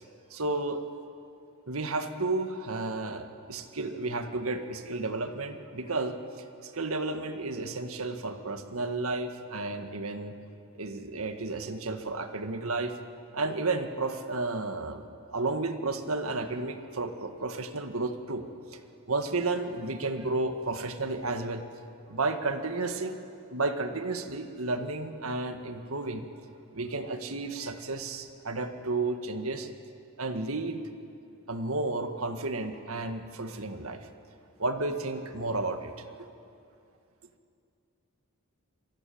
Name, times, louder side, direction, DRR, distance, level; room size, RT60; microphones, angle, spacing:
voice 1, 0.3-0.8 1.7-6.2 6.6-10.3 10.7-13.0 13.3-18.5 18.7-18.8 19.1-21.6 22.1-23.2 23.5-26.3 26.7-29.7 30.2-30.8 31.5-34.1 34.6-36.3, right 3 dB, 75° right, 7 dB, 1.9 m, -32 dB
27.5 x 24.0 x 8.7 m, 2.6 s
head